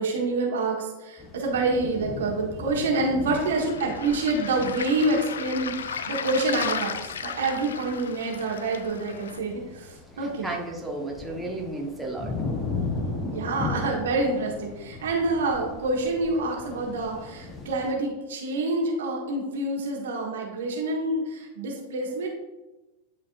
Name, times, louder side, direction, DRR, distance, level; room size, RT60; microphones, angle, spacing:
voice 1, 0.0-10.6 13.2-22.3, right 2 dB, 60° right, 0 dB, 1.4 m, -27 dB
sound 1, 1.2-17.9, left 3 dB, 20° left, 1.0 m, -37 dB
Waves surf, 3.4-9.4, left 7 dB, 65° left, 0.3 m, -35 dB
voice 2, 10.2-12.3, right 2 dB, 5° right, -2 dB, 1.2 m, -33 dB
10.5 x 4.3 x 2.5 m, 1.1 s
figure-of-eight pair, 90°, 0 cm